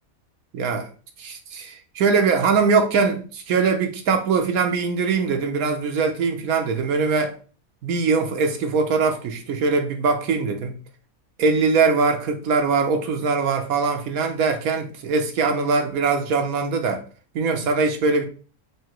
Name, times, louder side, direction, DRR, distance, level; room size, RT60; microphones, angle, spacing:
voice 1, 0.5-0.9 1.2-7.3 7.8-10.8 11.4-17.0 17.3-18.2, right 4 dB, 80° right, 1.2 m, -22 dB
4.8 x 2.8 x 3.0 m
omnidirectional pair, 1.5 m